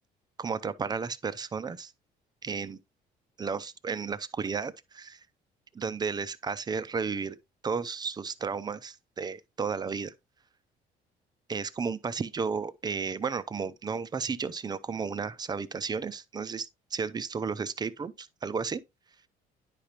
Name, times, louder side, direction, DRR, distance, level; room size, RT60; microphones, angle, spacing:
voice 1, 0.4-1.9 2.4-2.8 3.4-5.2 5.7-7.4 7.6-10.1 11.5-18.8, right 5 dB, 25° right, 0.6 m, -33 dB
9.9 x 5.1 x 2.9 m
cardioid pair, 110°, 17 cm